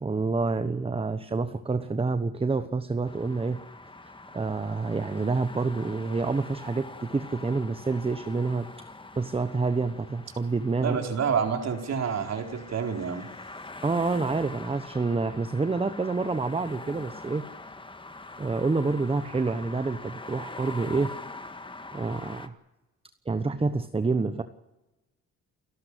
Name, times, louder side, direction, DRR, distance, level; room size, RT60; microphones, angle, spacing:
voice 1, 0.0-3.6 4.3-8.7 9.2-11.0 13.8-17.5 18.4-21.1 21.9-22.5 23.3-24.4, right 3 dB, 20° right, 11 dB, 1.1 m, -28 dB
sound 1, 3.0-22.5, left 2 dB, 15° left, 1.7 m, -44 dB
voice 2, 10.8-13.3, right 6 dB, 60° right, 4 dB, 4.2 m, -28 dB
29.0 x 13.0 x 10.0 m, 1.1 s
cardioid pair, 90°, 30 cm